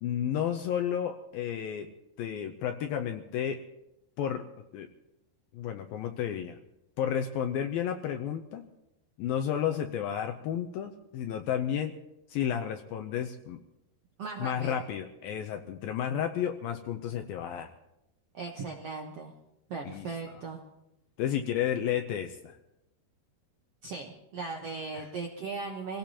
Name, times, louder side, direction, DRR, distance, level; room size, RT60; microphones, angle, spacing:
voice 1, 0.0-1.9 2.2-3.6 4.2-4.5 4.7-4.9 5.5-6.6 7.0-8.6 9.2-12.0 12.3-13.6 14.4-17.7 19.9-20.1 21.2-22.6 24.9-25.1, left 9 dB, 75° left, 5 dB, 2.4 m, -32 dB
voice 2, 14.2-14.8 18.3-19.3 19.7-20.6 23.8-26.0, right 4 dB, 75° right, 1 dB, 1.4 m, -38 dB
27.0 x 17.5 x 3.0 m, 0.87 s
omnidirectional pair, 4.6 m